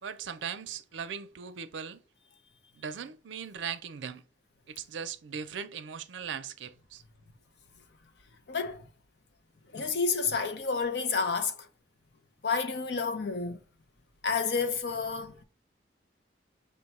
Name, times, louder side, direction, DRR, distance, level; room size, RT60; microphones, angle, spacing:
voice 1, 0.0-2.0 2.7-4.2 4.7-7.0, right 7 dB, 85° right, 0.5 m, -39 dB
voice 2, 8.5-8.9 9.7-11.7 12.4-13.6 14.2-15.4, left 5 dB, 65° left, 0.6 m, -30 dB
5.1 x 2.2 x 4.0 m
head